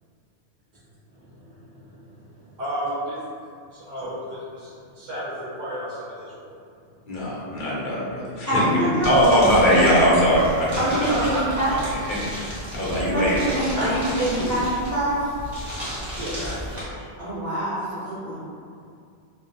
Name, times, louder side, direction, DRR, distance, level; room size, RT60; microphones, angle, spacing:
voice 1, 1.1-1.9 2.5-3.3 3.7-6.5 10.9-11.6 13.7-13.9 14.3-14.5 16.1-17.2, right 1 dB, 55° right, -10 dB, 0.6 m, -33 dB
voice 2, 7.1-11.1 11.7-11.8 12.1-12.2 12.7-14.0, equal, 55° left, -6 dB, 0.8 m, -21 dB
voice 3, 8.5-9.4 10.8-11.7 13.0-15.3 17.2-18.5, right 1 dB, 20° left, -13 dB, 0.7 m, -25 dB
sound 1, 9.0-16.8, equal, 25° right, 0.9 m, -33 dB
2.3 x 2.0 x 2.7 m, 2.3 s
omnidirectional pair, 1.1 m